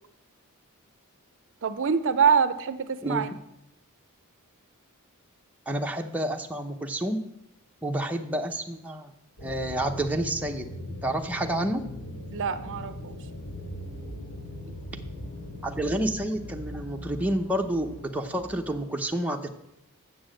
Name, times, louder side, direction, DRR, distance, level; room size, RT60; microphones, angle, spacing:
voice 1, 1.6-3.3 12.3-13.2, right 6 dB, 60° right, 12 dB, 0.5 m, -25 dB
voice 2, 5.7-7.2 7.8-9.1 9.4-10.7 11.0-11.8 15.6-19.5, right 1 dB, 5° right, 2 dB, 0.7 m, -29 dB
sound 1, 9.4-18.6, equal, 75° left, 2.5 m, -40 dB
7.3 x 7.0 x 7.6 m, 0.82 s
head